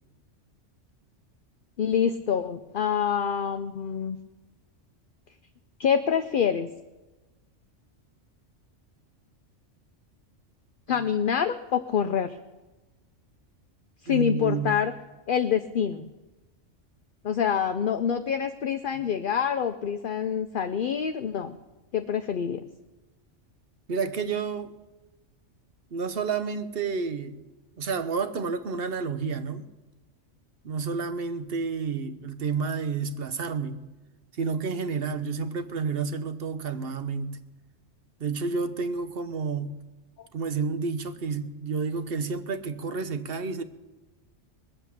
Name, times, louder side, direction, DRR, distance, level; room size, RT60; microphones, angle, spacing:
voice 1, 1.8-4.2 5.8-6.7 10.9-12.4 14.0-14.9 15.3-16.1 17.2-21.6 21.9-22.6, left 8 dB, 55° left, 0.7 m, -26 dB
voice 2, 14.1-14.8 23.9-24.7 25.9-27.4 27.8-29.7 30.6-33.8 34.4-37.4 38.2-39.7 40.3-43.6, right 5 dB, 55° right, 1.1 m, -30 dB
21.0 x 8.1 x 7.2 m
omnidirectional pair, 1.3 m